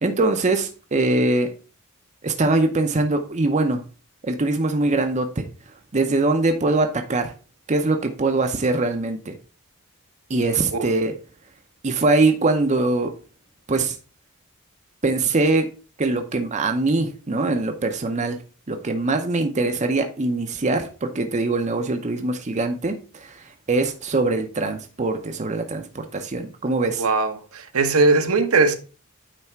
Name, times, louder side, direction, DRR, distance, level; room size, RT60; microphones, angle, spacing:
voice 1, 0.0-1.5 2.2-3.8 4.2-5.4 5.9-7.3 7.7-9.4 10.3-11.1 11.8-13.1 13.7-14.0 15.0-15.7 16.0-18.4 18.7-27.0, right 2 dB, 30° right, 0.7 m, -22 dB
voice 2, 27.0-28.7, right 3 dB, 70° right, 0.9 m, -19 dB
9.1 x 3.4 x 4.5 m
head